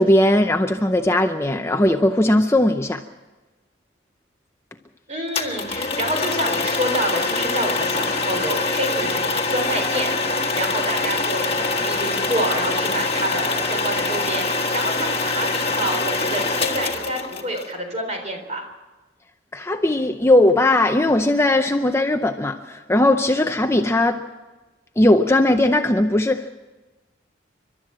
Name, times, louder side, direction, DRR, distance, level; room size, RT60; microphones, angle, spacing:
voice 1, 0.0-3.0 19.5-24.2 25.0-26.5, left 1 dB, 15° left, 6 dB, 0.6 m, -18 dB
voice 2, 5.1-18.7, right 1 dB, 35° right, 4 dB, 3.8 m, -28 dB
sound 1, 5.3-17.7, left 3 dB, 30° left, 1.5 m, -24 dB
29.5 x 12.5 x 7.6 m, 1.2 s
head